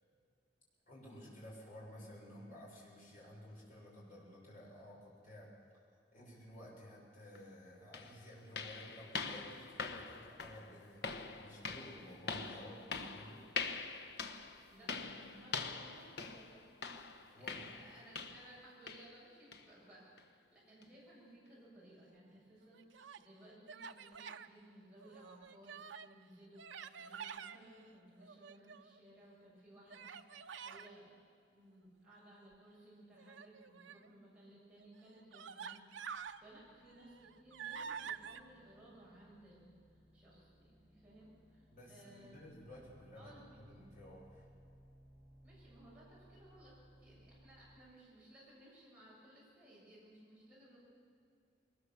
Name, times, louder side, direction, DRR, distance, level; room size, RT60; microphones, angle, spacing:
voice 1, 0.9-5.5 6.1-13.4 17.3-17.6 41.7-44.4, equal, 45° left, -4 dB, 6.4 m, -54 dB
sound 1, 7.3-7.4 7.9-18.6 18.9-19.1 19.5-19.7 20.2-20.3 20.8-20.9, left 4 dB, 60° left, 1.1 m, -44 dB
voice 2, 14.7-16.6 17.3-25.7 26.0-31.2 31.5-42.5 43.2-43.6 45.4-50.8, right 1 dB, 5° right, -8 dB, 7.6 m, -60 dB
Human voice, 22.6-23.3 23.7-24.5 25.0-26.1 26.6-27.6 28.2-29.0 29.9-30.9 33.2-34.1 34.8-34.9 35.3-36.4 36.9-38.4, right 7 dB, 85° right, 0.7 m, -48 dB
sound 2, 35.9-47.8, equal, 25° right, 7.8 m, -64 dB
21.5 x 19.5 x 7.1 m, 2.4 s
head